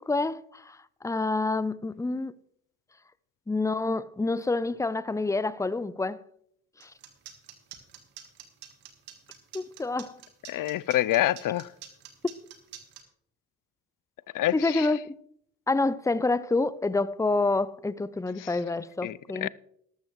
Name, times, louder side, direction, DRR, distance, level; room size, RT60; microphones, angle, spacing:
voice 1, 0.0-2.3 3.5-6.2 6.8-6.9 9.5-10.2 12.2-12.3 14.5-15.1 15.7-19.5, left 3 dB, 10° left, 0.5 m, -28 dB
sound 1, 6.8-13.0, right 11 dB, 90° right, 1.6 m, -46 dB
voice 2, 10.5-11.7 14.3-14.9 18.4-18.5 19.0-19.5, left 14 dB, 60° left, 0.5 m, -27 dB
13.5 x 12.5 x 3.1 m
supercardioid pair, 55°, 36 cm